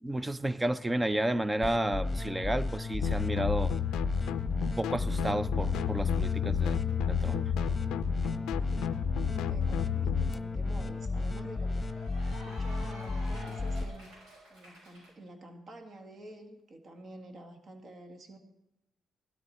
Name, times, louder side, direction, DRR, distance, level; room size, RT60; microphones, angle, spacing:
voice 1, 0.0-3.7 4.8-6.8 7.1-7.4, right 1 dB, 15° right, 0.5 m, -31 dB
sound 1, 1.6-13.8, left 3 dB, 20° left, 1.0 m, -33 dB
sound 2, 3.0-10.3, left 11 dB, 90° left, 0.4 m, -33 dB
voice 2, 8.2-12.0 12.3-14.2 14.5-18.4, right 1 dB, 50° right, 1.8 m, -49 dB
Cheering / Applause, 9.8-15.1, equal, 90° right, 6.1 m, -51 dB
17.0 x 12.5 x 4.2 m
cardioid pair, 90°, 0 cm